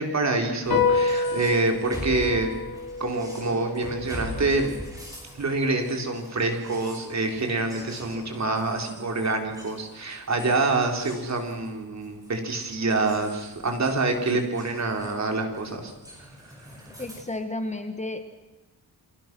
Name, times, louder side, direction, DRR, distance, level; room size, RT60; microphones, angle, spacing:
voice 1, 0.0-2.5 3.0-4.8 5.4-15.9, right 3 dB, 45° right, 3 dB, 4.1 m, -26 dB
sound 1, 0.6-17.2, equal, 10° right, 6.4 m, -43 dB
sound 2, 0.7-7.4, left 4 dB, 65° left, 3.5 m, -30 dB
voice 2, 17.0-18.2, left 2 dB, 20° left, 7 dB, 1.5 m, -32 dB
29.5 x 24.5 x 6.2 m, 1.0 s
wide cardioid pair, 165°, 38 cm